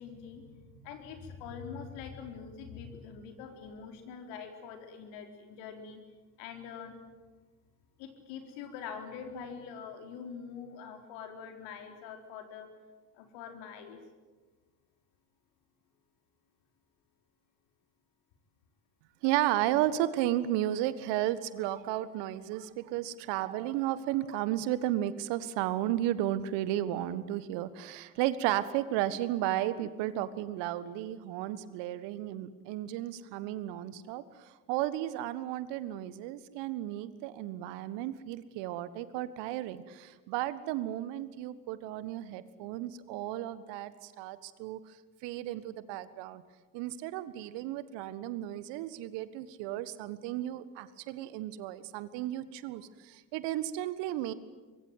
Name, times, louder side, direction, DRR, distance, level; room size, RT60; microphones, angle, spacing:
voice 1, 0.0-6.0 6.4-7.0 8.0-12.7 13.1-14.0, left 6 dB, 65° left, 5 dB, 4.3 m, -44 dB
voice 2, 19.2-44.8 45.2-46.4 46.7-54.3, right 13 dB, 60° right, 15 dB, 1.6 m, -33 dB
25.0 x 21.5 x 9.3 m, 1.3 s
figure-of-eight pair, 60°, 47 cm